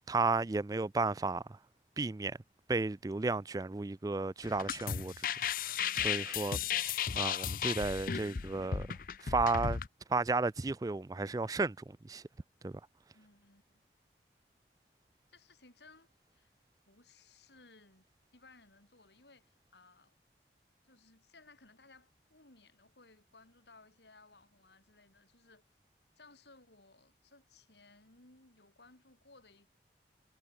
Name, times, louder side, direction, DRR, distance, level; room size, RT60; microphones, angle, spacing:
voice 1, 0.1-1.6 2.0-2.4 2.7-5.3 5.6-8.9 9.2-9.8 10.1-12.2 12.6-12.8, right 3 dB, 20° right, 0.3 m, -33 dB
sound 1, 4.4-9.9, left 8 dB, 50° left, 0.5 m, -35 dB
voice 2, 13.1-13.8 15.3-16.5 16.9-18.1 18.3-20.1 20.8-25.6 26.2-29.7, left 3 dB, 75° left, 5.2 m, -61 dB
head